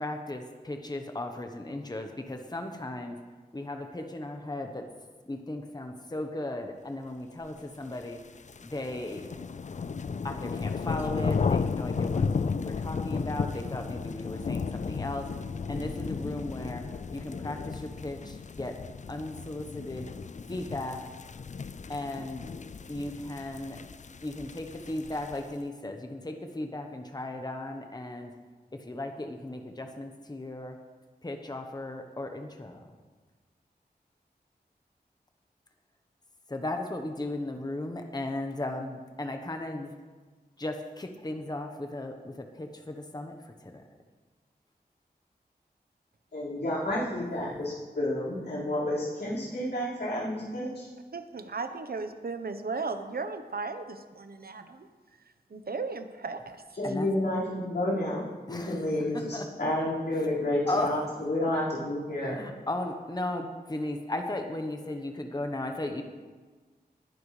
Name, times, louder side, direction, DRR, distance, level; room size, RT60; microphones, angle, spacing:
voice 1, 0.0-3.2 3.5-4.9 5.3-8.2 8.6-9.3 10.2-12.3 12.6-18.8 19.1-20.1 20.5-21.1 21.9-22.5 22.9-23.8 24.2-28.4 28.7-30.8 31.2-32.9 36.5-39.9 40.6-43.8 56.8-57.1 58.5-59.5 60.7-61.0 62.2-66.0, left 1 dB, 25° left, 5 dB, 1.1 m, -36 dB
sound 1, 8.0-25.5, left 5 dB, 45° left, 0.4 m, -34 dB
voice 2, 46.3-50.9 56.8-62.4, left 1 dB, 90° left, -9 dB, 5.0 m, -30 dB
voice 3, 51.1-54.9 55.5-56.6, right 4 dB, 65° right, 8 dB, 1.0 m, -36 dB
20.0 x 10.5 x 3.3 m, 1.4 s
wide cardioid pair, 55°, 17 cm